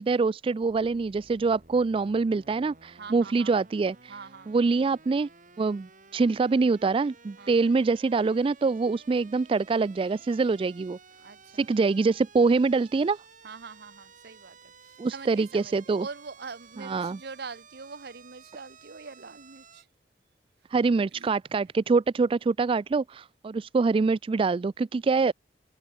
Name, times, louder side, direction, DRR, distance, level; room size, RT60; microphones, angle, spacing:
voice 1, 0.0-4.1 4.5-5.3 5.6-11.0 11.5-13.2 15.0-16.1 16.8-17.2 20.7-25.3, right 4 dB, 30° right, 0.3 m, -25 dB
sound 1, 0.6-19.8, right 5 dB, 50° right, 5.3 m, -54 dB
voice 2, 3.0-3.7 4.1-4.5 7.4-7.6 11.2-11.7 13.4-19.9 21.1-21.3, right 4 dB, 65° right, 0.9 m, -43 dB
head